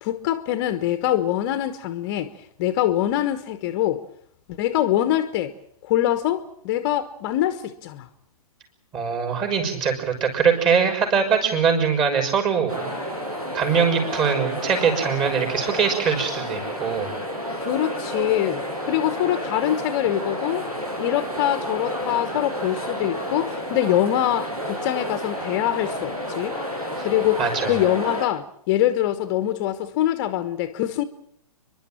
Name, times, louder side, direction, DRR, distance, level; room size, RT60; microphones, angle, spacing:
voice 1, 0.0-2.3 2.6-4.0 4.6-5.5 5.8-8.1 17.6-20.7 21.0-26.6 27.0-31.0, left 12 dB, 35° left, 1.2 m, -24 dB
voice 2, 8.9-12.9 13.5-17.1 27.0-27.1 27.4-27.7, right 6 dB, 25° right, 5.9 m, -22 dB
Large crowd medium distance stereo, 12.7-28.3, equal, 75° right, 7.7 m, -30 dB
30.0 x 11.5 x 9.0 m
figure-of-eight pair, 125°, 19 cm